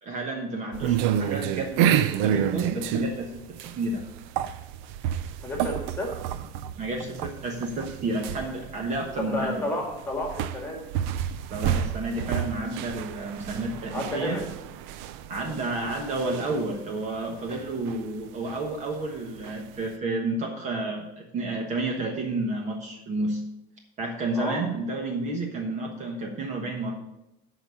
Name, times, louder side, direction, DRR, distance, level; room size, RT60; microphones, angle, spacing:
voice 1, 0.0-3.4 3.7-4.1 6.8-9.6 11.5-14.4 15.3-23.4 24.0-27.0, right 2 dB, 35° right, 2 dB, 1.2 m, -30 dB
sound 1, 0.7-19.9, right 10 dB, 75° right, 0.6 m, -30 dB
voice 2, 5.4-6.1 9.2-10.8 13.9-14.4 24.4-24.6, left 1 dB, 10° left, 0 dB, 2.0 m, -31 dB
11.5 x 4.1 x 6.8 m, 0.90 s
cardioid pair, 165°, 20 cm